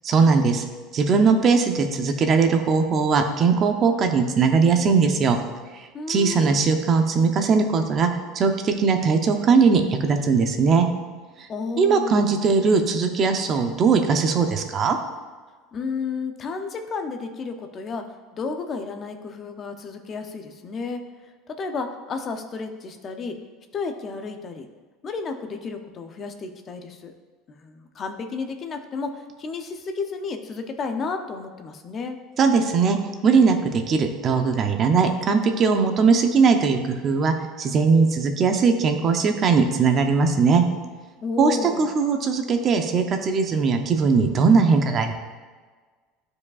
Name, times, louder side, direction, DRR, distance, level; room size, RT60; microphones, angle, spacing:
voice 1, 0.0-0.6 0.9-5.4 6.1-8.1 8.3-10.9 11.8-15.0 32.4-33.0 33.2-40.6 41.4-45.1, right 5 dB, 30° right, 6 dB, 0.6 m, -20 dB
voice 2, 5.9-6.6 11.5-12.2 15.7-18.0 18.3-21.0 21.5-23.4 23.7-24.7 25.0-27.1 27.6-32.2 41.2-41.9, left 4 dB, 25° left, 6 dB, 0.6 m, -32 dB
12.0 x 4.8 x 2.4 m, 1.4 s
cardioid pair, 160°, 0 cm